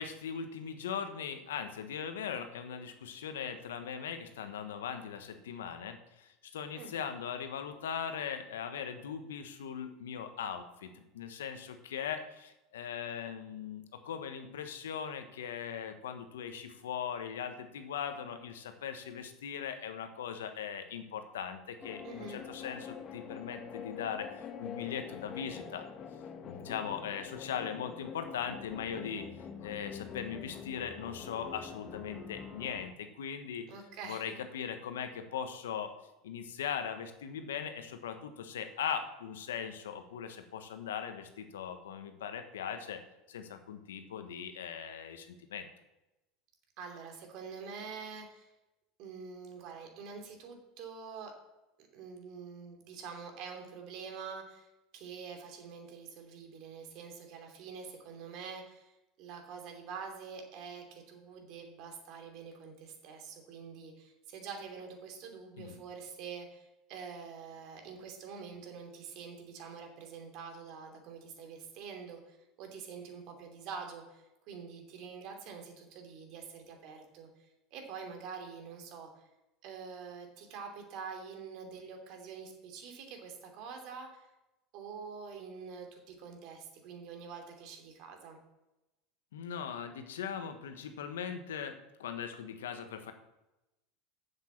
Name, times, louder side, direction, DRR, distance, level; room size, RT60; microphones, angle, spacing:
voice 1, 0.0-25.9 26.4-29.3 29.6-33.7 34.0-35.9 36.2-43.0 43.3-45.7 65.6-65.8 89.3-93.1, left 8 dB, 90° left, 8 dB, 1.2 m, -39 dB
sound 1, 21.8-32.9, left 6 dB, 40° left, 1.5 m, -45 dB
voice 2, 22.0-22.4 33.7-34.3 46.8-48.5 49.0-51.3 51.8-54.7 54.9-77.3 77.7-79.1 79.6-84.2 84.7-88.4, right 5 dB, 60° right, 3 dB, 2.9 m, -46 dB
7.8 x 7.3 x 7.4 m, 0.96 s
supercardioid pair, 105°, 0 cm